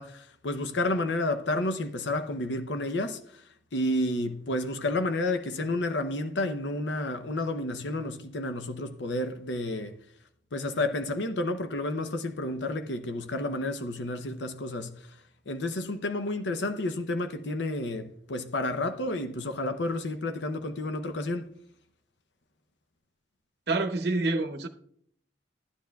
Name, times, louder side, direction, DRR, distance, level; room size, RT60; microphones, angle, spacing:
voice 1, 0.0-9.9 10.5-15.2 15.5-21.5, left 2 dB, 75° left, 0.7 m, -31 dB
voice 2, 23.7-24.7, right 2 dB, 60° right, 0.7 m, -27 dB
13.0 x 9.5 x 2.3 m
head